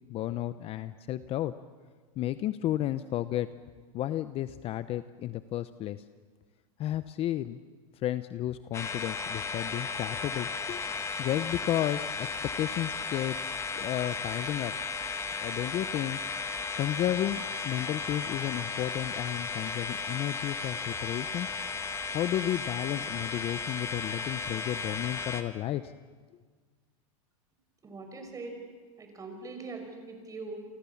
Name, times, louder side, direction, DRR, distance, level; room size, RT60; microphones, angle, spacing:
voice 1, 0.1-1.5 2.2-3.5 3.9-6.0 6.8-7.6 8.0-10.8 11.2-12.3 12.6-13.4 13.8-14.7 15.4-16.2 16.8-21.5 22.1-25.8, left 13 dB, 30° left, 13 dB, 0.8 m, -32 dB
sound 1, 8.7-25.4, left 4 dB, 15° left, 1.7 m, -35 dB
voice 2, 27.8-28.6 29.0-30.6, right 3 dB, 20° right, 5 dB, 5.7 m, -41 dB
29.0 x 24.5 x 7.2 m, 1.5 s
supercardioid pair, 130°, 18 cm